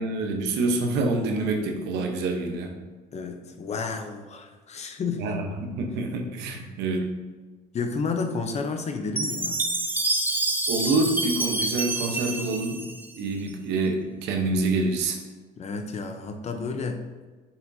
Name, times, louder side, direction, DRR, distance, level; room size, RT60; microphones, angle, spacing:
voice 1, 0.0-2.7 5.2-7.1 10.7-12.8 13.2-15.2, right 2 dB, 90° right, 4 dB, 1.0 m, -26 dB
voice 2, 3.1-5.3 7.7-9.6 15.6-17.0, left 4 dB, 40° left, 6 dB, 0.8 m, -31 dB
Chime, 9.2-13.5, right 2 dB, 10° right, 0.8 m, -27 dB
7.2 x 5.9 x 2.8 m, 1.3 s
cardioid pair, 110°, 17 cm